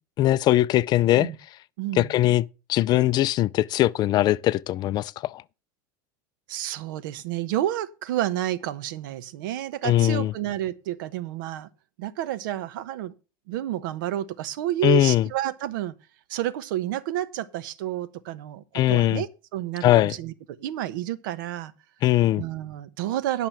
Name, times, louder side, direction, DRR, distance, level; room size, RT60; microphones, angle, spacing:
voice 1, 0.2-1.3 2.0-5.4 9.8-10.3 14.8-15.3 18.7-19.2 19.8-20.1 22.0-22.4, left 14 dB, 40° left, 0.4 m, -21 dB
voice 2, 1.8-2.2 6.5-11.7 12.0-13.1 13.5-15.9 16.3-20.3 20.6-21.7 22.4-23.5, right 13 dB, 75° right, 1.0 m, -30 dB
11.0 x 6.0 x 5.8 m
supercardioid pair, 125°, 11 cm